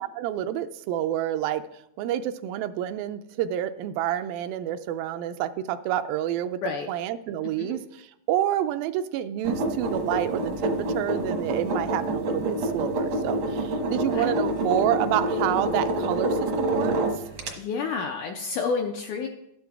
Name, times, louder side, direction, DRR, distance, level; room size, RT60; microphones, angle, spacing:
voice 1, 0.0-1.6 2.0-6.6 6.9-17.2, right 11 dB, 85° right, 10 dB, 2.2 m, -28 dB
voice 2, 7.4-7.8 14.1-14.3 17.6-19.3, left 5 dB, 80° left, 3 dB, 1.8 m, -30 dB
sound 1, 9.4-17.5, right 1 dB, 65° right, 1.2 m, -27 dB
12.0 x 9.7 x 3.5 m, 0.79 s
omnidirectional pair, 4.2 m